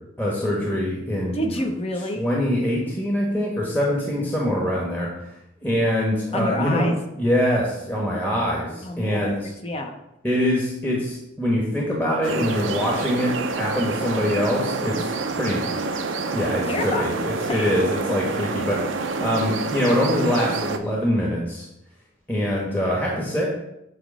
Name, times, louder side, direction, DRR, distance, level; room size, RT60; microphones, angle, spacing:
voice 1, 0.2-1.4 2.1-5.1 5.6-6.9 7.2-9.3 10.2-15.6 16.3-21.6 22.3-23.5, equal, 10° left, -4 dB, 1.3 m, -24 dB
voice 2, 1.3-2.3 6.3-7.0 8.8-9.9 16.7-17.2 17.5-17.9, left 1 dB, 30° left, 4 dB, 0.9 m, -28 dB
sound 1, 12.2-20.8, right 3 dB, 90° right, 0.7 m, -27 dB
9.4 x 3.1 x 6.2 m, 0.85 s
head